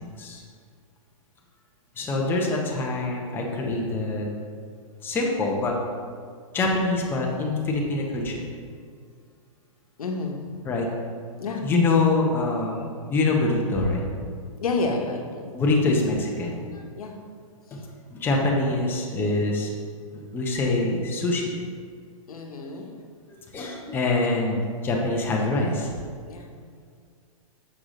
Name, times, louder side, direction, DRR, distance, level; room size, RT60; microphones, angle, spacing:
voice 1, 2.0-4.3 5.0-5.7 6.5-8.4 10.6-10.9 11.6-12.8 13.1-14.0 15.6-16.6 18.1-19.7 20.3-21.4 23.5-24.6 24.8-25.9, left 2 dB, 10° left, -1 dB, 0.7 m, -24 dB
voice 2, 10.0-10.4 11.4-11.6 14.6-15.5 17.0-17.1 22.3-22.9 26.3-26.5, left 3 dB, 90° left, 2 dB, 1.0 m, -29 dB
6.6 x 4.7 x 3.7 m, 2.1 s
hypercardioid pair, 150°, 18 cm